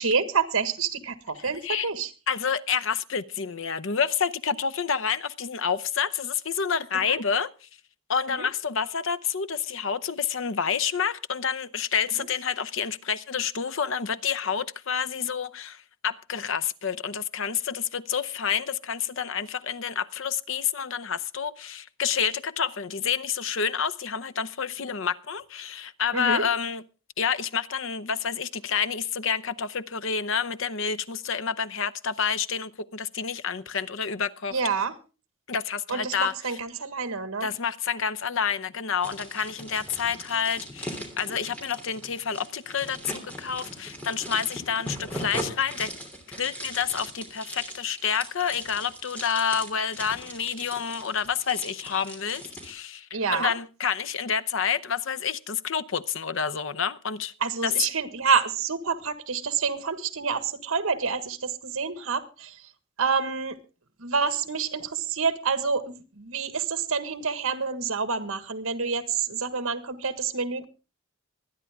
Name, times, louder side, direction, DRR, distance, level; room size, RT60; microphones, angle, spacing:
voice 1, 0.0-2.1 7.1-7.2 8.4-8.5 26.1-26.4 34.5-34.9 35.9-37.5 53.1-53.5 57.4-62.6 63.0-63.6 64.0-70.6, right 5 dB, 75° right, 1.6 m, -28 dB
voice 2, 2.3-7.7 8.1-26.8 27.2-34.6 35.5-36.6 37.4-45.9 46.4-57.3 57.6-57.7, left 7 dB, 65° left, 0.7 m, -29 dB
sound 1, 39.0-52.7, right 1 dB, 5° left, 3.1 m, -40 dB
24.0 x 9.9 x 3.6 m
head